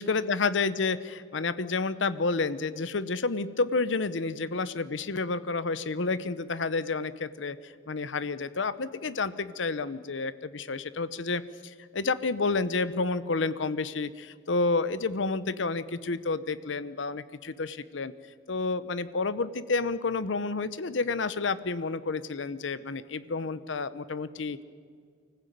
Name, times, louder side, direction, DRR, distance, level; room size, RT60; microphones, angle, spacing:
voice 1, 0.0-18.1 18.5-24.6, left 3 dB, 80° left, 15 dB, 0.8 m, -30 dB
24.5 x 15.0 x 9.2 m, 2.1 s
head